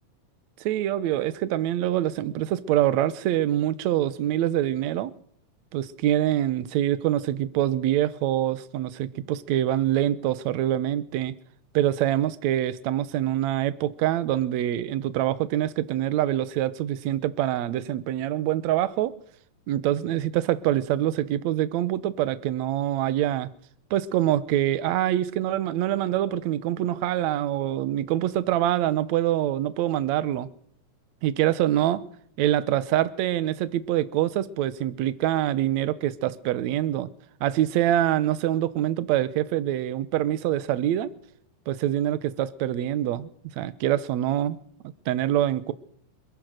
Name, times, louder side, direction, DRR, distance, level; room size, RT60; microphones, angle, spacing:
voice 1, 0.6-5.1 5.7-11.3 11.7-19.1 19.7-23.5 23.9-30.5 31.2-32.1 32.4-37.1 37.4-41.1 41.7-43.3 43.6-44.6 45.1-45.7, right 12 dB, 70° right, 2.0 m, -25 dB
26.0 x 15.5 x 6.6 m
omnidirectional pair, 3.9 m